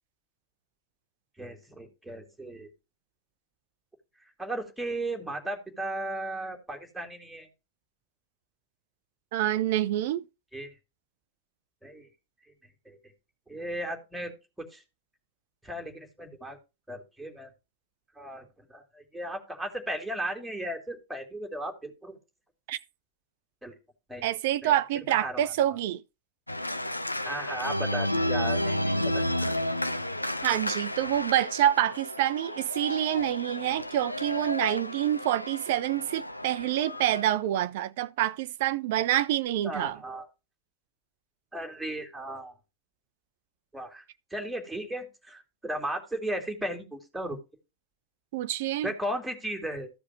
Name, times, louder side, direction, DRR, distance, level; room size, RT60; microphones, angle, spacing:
voice 1, 1.4-2.7 4.4-7.5 10.5-10.7 11.8-12.1 12.9-13.0 13.5-14.3 14.6-14.8 15.6-16.6 16.9-17.5 18.2-22.2 23.6-23.7 24.1-24.2 24.6-24.7 25.1-25.5 27.2-29.2 39.6-40.3 41.5-42.5 43.7-44.0 44.3-47.4 48.8-49.9, right 1 dB, ahead, 2.7 m, -36 dB
voice 2, 9.3-10.2 22.7-22.8 24.2-26.0 30.4-40.0 48.3-48.9, right 12 dB, 50° right, 0.6 m, -27 dB
Organ, 26.5-37.2, left 1 dB, 85° left, 0.6 m, -32 dB
14.5 x 4.9 x 4.3 m
figure-of-eight pair, 90°, 0 cm